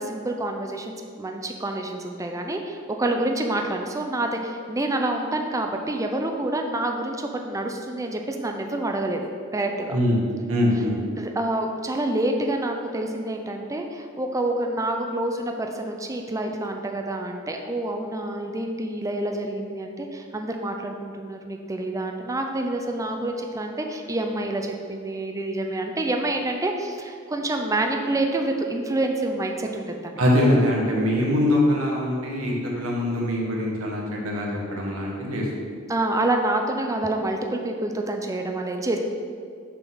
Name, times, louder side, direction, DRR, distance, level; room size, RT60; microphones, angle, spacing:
voice 1, 0.0-10.0 11.2-30.2 35.9-39.0, right 2 dB, 15° right, 3 dB, 0.4 m, -27 dB
voice 2, 9.9-10.2 10.5-11.0 30.2-35.5, left 1 dB, 90° right, -2 dB, 1.5 m, -23 dB
6.7 x 3.7 x 6.3 m, 2.2 s
head